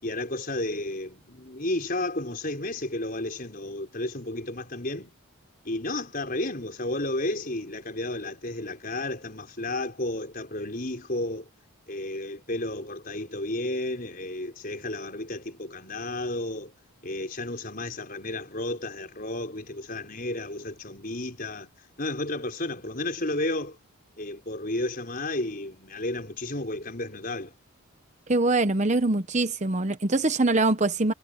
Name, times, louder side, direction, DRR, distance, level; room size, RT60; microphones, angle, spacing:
voice 1, 0.0-5.1 5.6-11.5 11.9-16.7 17.0-21.7 22.0-23.8 24.2-27.5, left 2 dB, 40° left, 5.1 m, -32 dB
voice 2, 28.3-31.1, right 2 dB, 30° right, 0.8 m, -23 dB
head